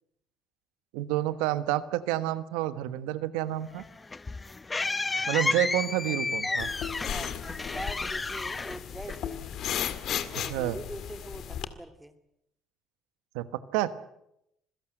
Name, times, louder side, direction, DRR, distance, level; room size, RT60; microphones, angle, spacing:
voice 1, 0.9-3.8 5.3-6.7 10.3-10.8 13.3-13.4 13.7-13.9, right 14 dB, 85° right, 13 dB, 1.3 m, -29 dB
sound 1, 3.7-9.6, left 3 dB, 25° left, 0.9 m, -32 dB
voice 2, 6.1-6.6 7.1-9.5 10.3-12.1, right 1 dB, 5° right, 9 dB, 2.6 m, -42 dB
sound 2, 6.6-11.6, left 9 dB, 65° left, 1.9 m, -35 dB
26.5 x 17.0 x 7.9 m, 0.80 s
supercardioid pair, 80°, 0 cm